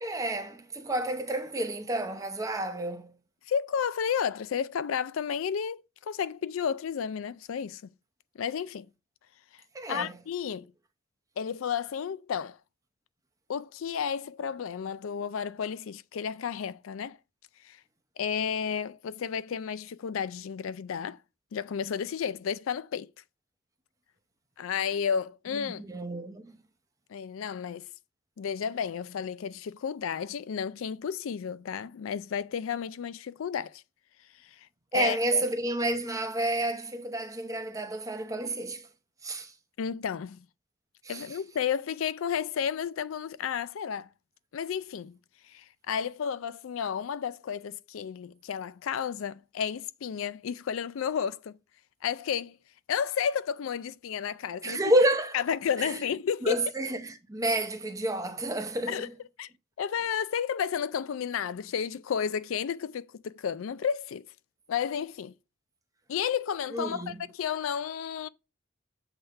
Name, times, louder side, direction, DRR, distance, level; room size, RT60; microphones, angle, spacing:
voice 1, 0.0-3.1 9.7-10.2 25.5-26.6 34.9-38.9 39.2-39.5 41.0-41.4 54.6-55.4 55.8-56.0 56.4-59.1 66.7-67.2, right 1 dB, 15° right, 0.7 m, -30 dB
voice 2, 3.5-7.9 8.4-8.9 9.9-10.7 11.4-12.6 13.5-17.2 17.6-17.8 18.2-21.2 21.5-23.1 24.6-25.8 27.1-27.9 28.4-33.8 34.4-34.7 34.9-35.4 39.8-40.5 41.1-44.1 44.5-45.2 45.5-51.6 52.0-52.6 52.9-54.8 55.3-56.7 58.9-59.1 59.4-59.5 59.8-64.2 64.7-65.3 66.1-68.3, left 7 dB, 85° left, 0.4 m, -32 dB
7.1 x 3.6 x 5.4 m
head